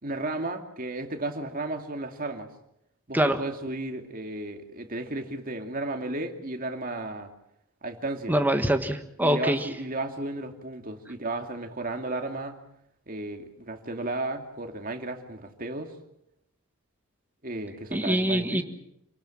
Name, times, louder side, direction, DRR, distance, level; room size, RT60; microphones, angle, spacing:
voice 1, 0.0-2.5 3.1-7.3 7.8-8.3 9.2-12.6 13.1-15.9 17.4-18.6, right 2 dB, 40° right, 5 dB, 2.5 m, -34 dB
voice 2, 8.3-9.7 17.9-18.6, right 1 dB, 10° right, 6 dB, 1.5 m, -24 dB
27.5 x 18.0 x 7.4 m, 0.79 s
head